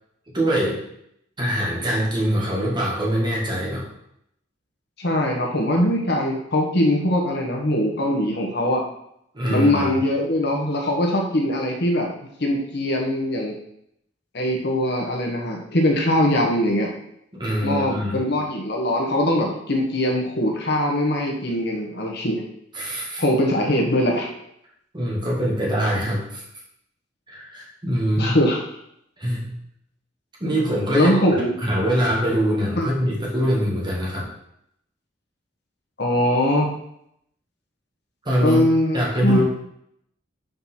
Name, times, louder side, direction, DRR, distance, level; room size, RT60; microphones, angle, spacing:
voice 1, 0.3-0.8 1.4-3.9 9.3-9.9 17.4-18.3 22.7-23.2 24.9-26.4 27.3-28.4 29.2-29.5 30.4-31.1 31.6-34.3 38.3-38.6 38.9-39.4, equal, 25° right, -4 dB, 2.1 m, -23 dB
voice 2, 5.0-8.8 9.5-12.1 12.4-13.5 14.3-16.9 17.6-22.4 23.2-24.3 28.2-28.6 30.9-31.5 32.8-32.9 36.0-36.7 38.4-39.4, left 1 dB, 65° left, 0 dB, 1.4 m, -21 dB
5.3 x 4.6 x 5.8 m, 0.74 s
head